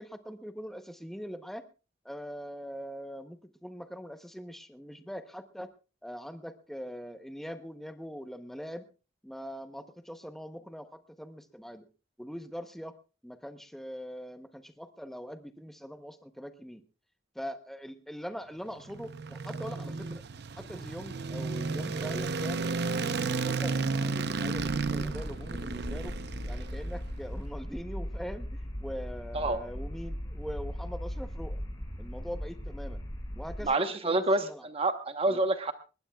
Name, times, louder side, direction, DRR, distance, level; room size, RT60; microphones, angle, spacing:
voice 1, 0.0-1.6 2.0-5.7 6.0-8.9 9.2-11.8 12.2-13.0 13.2-16.8 17.3-20.2 20.6-22.7 23.0-26.1 26.4-31.6 32.0-33.0 33.3-34.7 35.3-35.4, equal, ahead, 8 dB, 0.8 m, -42 dB
sound 1, 18.7-27.1, right 4 dB, 60° right, 0.7 m, -33 dB
sound 2, 24.6-33.6, equal, 20° left, 5.5 m, -38 dB
voice 2, 33.6-35.7, right 2 dB, 30° right, 9 dB, 1.0 m, -28 dB
20.0 x 19.5 x 2.3 m, 0.32 s
head